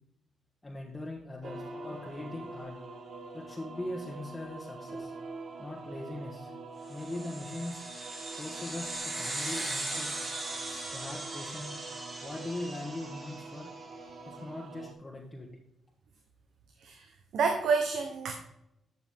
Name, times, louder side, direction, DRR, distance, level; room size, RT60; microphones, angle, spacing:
voice 1, 0.6-2.8 3.3-5.1 5.6-6.5 6.9-7.8 8.3-10.2 10.9-11.8 12.2-13.7 14.3-15.5, left 1 dB, 20° left, -1 dB, 1.2 m, -40 dB
sound 1, 1.4-14.9, right 3 dB, 55° right, 1.2 m, -45 dB
sound 2, 6.9-13.8, right 2 dB, 35° right, 2.6 m, -39 dB
voice 2, 17.3-18.3, right 5 dB, 80° right, 5 dB, 1.0 m, -28 dB
12.0 x 6.0 x 3.6 m, 0.84 s
cardioid pair, 120°, 0 cm